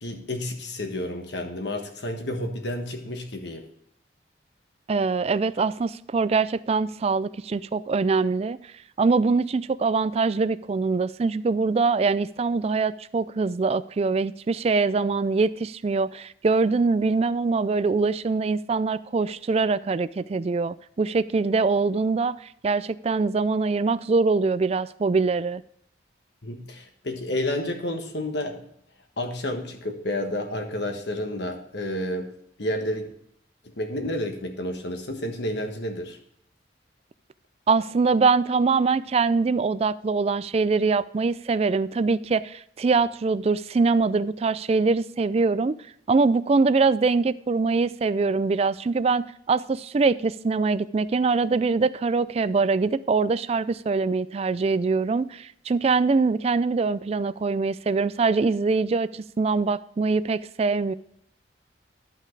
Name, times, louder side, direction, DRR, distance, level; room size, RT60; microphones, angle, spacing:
voice 1, 0.0-3.7 26.4-28.6 29.2-32.3 32.6-33.1 33.6-36.2, left 1 dB, 65° left, 1.4 m, -30 dB
voice 2, 4.9-8.6 9.0-25.6 37.7-45.7 46.1-60.9, right 4 dB, 35° right, 0.3 m, -23 dB
12.0 x 5.7 x 4.6 m
head